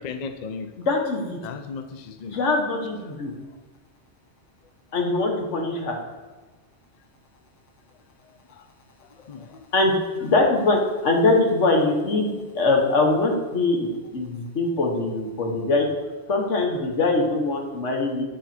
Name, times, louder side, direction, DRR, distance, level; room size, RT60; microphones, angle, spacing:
voice 1, 0.0-0.7 1.4-2.4 3.2-3.3 9.3-9.6, left 5 dB, 50° left, 8 dB, 0.6 m, -35 dB
voice 2, 0.8-1.4 2.3-3.3 4.9-6.0 9.7-12.3 12.5-13.9 14.1-15.9 16.3-18.2, left 2 dB, 90° left, 1 dB, 1.6 m, -22 dB
8.8 x 4.9 x 4.3 m, 1.3 s
omnidirectional pair, 1.2 m